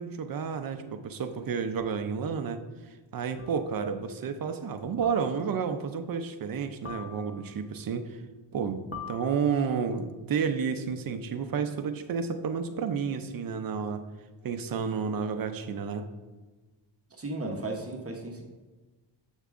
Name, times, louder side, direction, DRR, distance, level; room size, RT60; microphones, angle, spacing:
voice 1, 0.0-2.6 3.1-8.1 8.5-14.0 14.4-16.1, right 6 dB, 50° right, 8 dB, 0.6 m, -31 dB
sound 1, 1.8-1.9 3.4-3.8 5.0-5.6 6.8-7.6 8.9-9.8, left 6 dB, 30° left, 0.9 m, -44 dB
voice 2, 17.2-18.4, right 2 dB, 30° right, 0 dB, 1.0 m, -35 dB
7.4 x 6.5 x 2.5 m, 1.3 s
cardioid pair, 90°, 47 cm